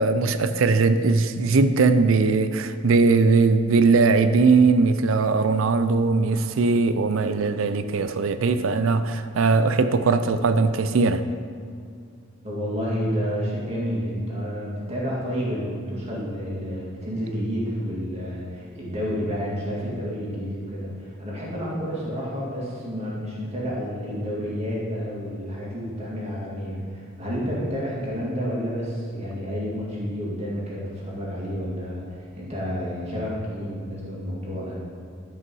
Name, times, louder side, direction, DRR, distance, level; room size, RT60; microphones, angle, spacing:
voice 1, 0.0-11.2, right 4 dB, 75° right, 0.5 m, -20 dB
voice 2, 12.4-34.8, equal, 30° right, 2.3 m, -30 dB
11.5 x 5.5 x 5.5 m
head